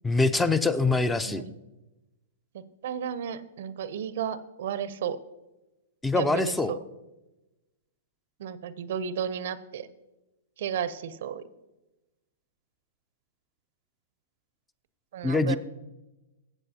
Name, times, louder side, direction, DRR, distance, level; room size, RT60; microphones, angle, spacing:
voice 1, 0.0-1.4 6.0-6.7 15.2-15.6, left 3 dB, 10° left, 13 dB, 0.4 m, -24 dB
voice 2, 2.5-5.2 6.2-6.8 8.4-9.9 10.6-11.4 15.1-15.6, right 8 dB, 60° right, 16 dB, 0.5 m, -33 dB
14.0 x 8.2 x 2.8 m, 1.0 s
hypercardioid pair, 120°, 0 cm